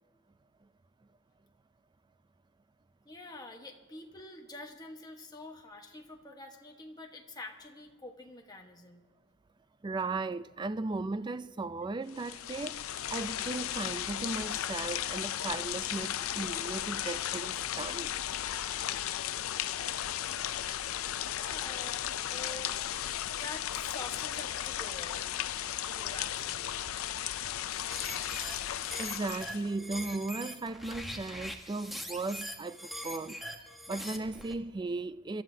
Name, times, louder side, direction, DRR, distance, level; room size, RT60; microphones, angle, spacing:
voice 1, 3.0-9.0 21.3-22.0 22.3-22.7 23.4-25.2 25.8-26.6, left 2 dB, 20° left, 1.2 m, -46 dB
voice 2, 9.8-18.1 29.0-33.5 33.9-35.4, right 3 dB, 20° right, 0.3 m, -36 dB
sound 1, 12.1-29.7, left 11 dB, 85° left, 0.4 m, -35 dB
sound 2, 27.7-34.6, equal, ahead, 1.0 m, -42 dB
26.0 x 13.0 x 2.7 m
head